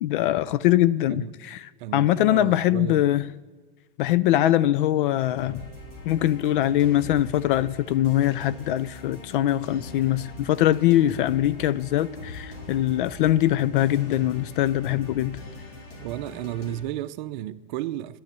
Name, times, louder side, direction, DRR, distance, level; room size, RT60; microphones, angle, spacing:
voice 1, 0.0-1.6 1.9-3.3 4.0-5.6 6.0-15.4, left 13 dB, 60° left, 0.4 m, -22 dB
voice 2, 1.8-3.1 16.0-18.2, right 13 dB, 55° right, 0.6 m, -33 dB
sound 1, 5.4-16.8, left 1 dB, 85° left, 3.9 m, -42 dB
11.0 x 10.5 x 6.8 m
supercardioid pair, 135°, 29 cm